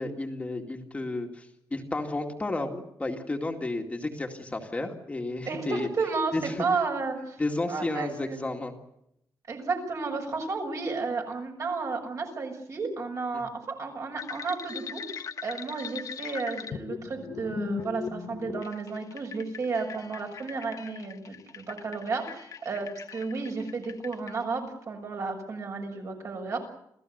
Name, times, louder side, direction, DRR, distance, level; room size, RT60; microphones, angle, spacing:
voice 1, 0.0-5.9 6.3-6.6 7.4-8.7 13.3-13.5, left 2 dB, 20° left, 2 dB, 2.2 m, -32 dB
voice 2, 5.4-7.4 7.7-8.4 9.5-26.6, right 4 dB, 50° right, 3 dB, 6.5 m, -32 dB
sound 1, 14.2-24.4, left 6 dB, 55° left, 1.3 m, -40 dB
28.0 x 16.0 x 8.0 m, 0.78 s
wide cardioid pair, 165°, 7 cm